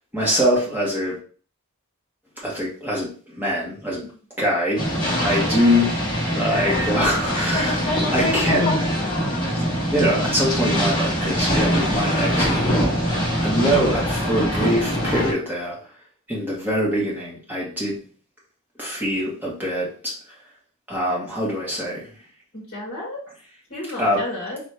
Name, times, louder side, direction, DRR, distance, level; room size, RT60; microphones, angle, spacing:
voice 1, 0.1-1.2 2.4-4.0 4.4-4.9 5.2-5.9 6.3-7.8 8.1-8.9 9.6-13.0 13.4-15.8 16.3-18.0 18.8-20.1 20.9-22.1 24.0-24.2, equal, 10° right, -5 dB, 1.6 m, -23 dB
sound 1, 4.8-15.3, equal, 20° left, 1.5 m, -23 dB
voice 2, 5.1-5.6 22.5-23.2 23.7-24.6, left 1 dB, 45° left, -4 dB, 1.5 m, -33 dB
4.4 x 3.1 x 3.3 m, 0.40 s
head